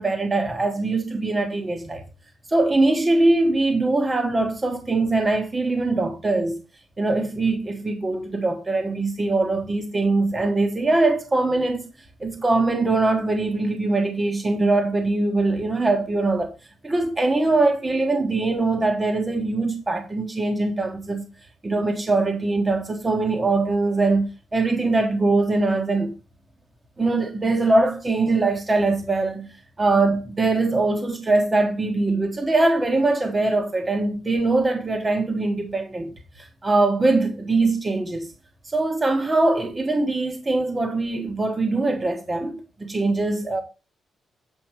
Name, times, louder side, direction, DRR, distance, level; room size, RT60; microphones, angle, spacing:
voice 1, 0.0-2.0 2.5-6.6 7.0-11.8 12.2-16.5 16.8-21.2 21.6-26.1 27.0-29.5 29.8-36.1 36.4-38.3 38.7-43.6, right 2 dB, 20° right, 1.4 m, -22 dB
8.3 x 5.0 x 4.6 m
wide cardioid pair, 150°, 0 cm